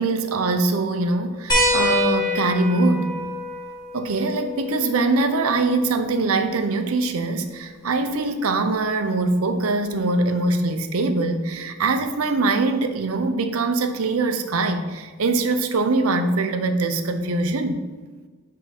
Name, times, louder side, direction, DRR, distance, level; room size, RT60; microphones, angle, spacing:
voice 1, 0.0-3.1 3.9-17.8, right 3 dB, 85° right, 7 dB, 0.6 m, -22 dB
sound 1, 1.5-6.6 8.1-8.2 9.9-10.0, left 2 dB, 20° left, 1.2 m, -26 dB
7.2 x 3.6 x 4.2 m, 1.4 s
head